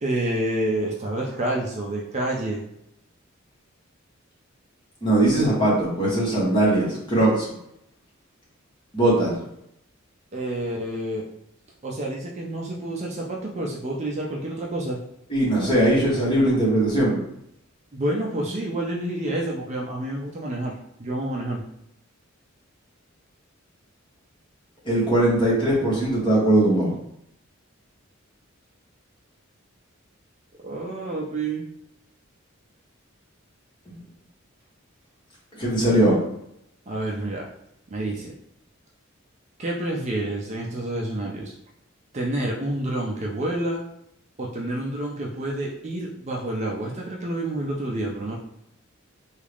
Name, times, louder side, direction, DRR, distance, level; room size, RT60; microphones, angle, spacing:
voice 1, 0.0-2.6 10.3-11.3 11.8-15.0 17.9-21.6 30.6-31.6 36.9-37.5 37.9-38.3 39.6-41.5 42.1-43.8 44.4-48.4, right 1 dB, 35° right, -2 dB, 0.5 m, -28 dB
voice 2, 5.0-7.5 8.9-9.4 15.3-17.2 24.8-26.9 35.6-36.2, right 1 dB, 25° left, -6 dB, 1.3 m, -20 dB
3.6 x 2.4 x 3.4 m, 0.77 s
head